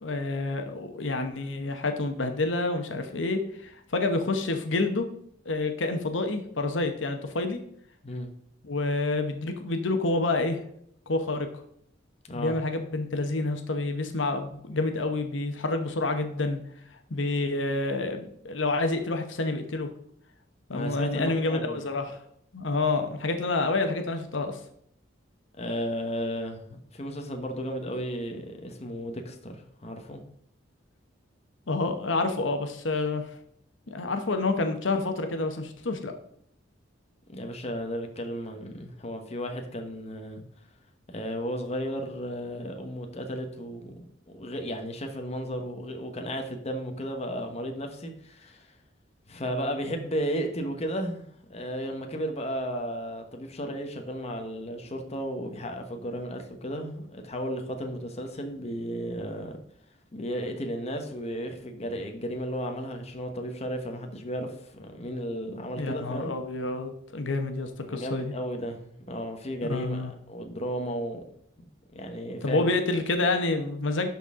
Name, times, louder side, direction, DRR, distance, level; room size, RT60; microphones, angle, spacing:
voice 1, 0.0-5.1 5.4-7.6 8.6-10.6 11.1-11.5 12.3-16.6 17.1-19.9 20.7-22.3 22.5-24.6 31.7-33.3 33.9-36.1 65.8-68.3 69.7-70.1 72.4-74.1, left 2 dB, 85° left, 6 dB, 0.9 m, -28 dB
voice 2, 12.2-12.5 20.7-21.8 25.6-30.2 37.3-40.4 41.1-48.8 49.3-59.6 60.1-66.3 67.8-71.2 71.9-72.6, equal, 35° left, 4 dB, 1.1 m, -34 dB
11.5 x 4.3 x 3.7 m, 0.69 s
head